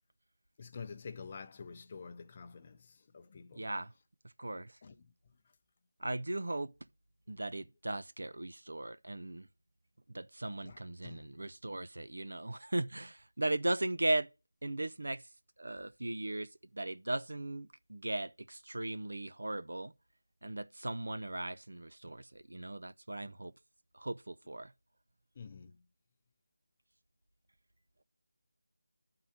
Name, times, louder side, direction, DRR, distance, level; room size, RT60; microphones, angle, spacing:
voice 1, 0.6-3.7 4.8-5.4 10.6-11.4 25.3-25.8, left 5 dB, 30° left, 0.6 m, -49 dB
voice 2, 3.6-3.9 4.4-4.8 6.0-6.7 7.3-9.5 10.1-14.3 14.6-15.2 15.6-19.9 20.4-23.5 23.9-24.7, right 1 dB, 80° right, 0.5 m, -37 dB
10.5 x 3.9 x 7.1 m
figure-of-eight pair, 170°, 0 cm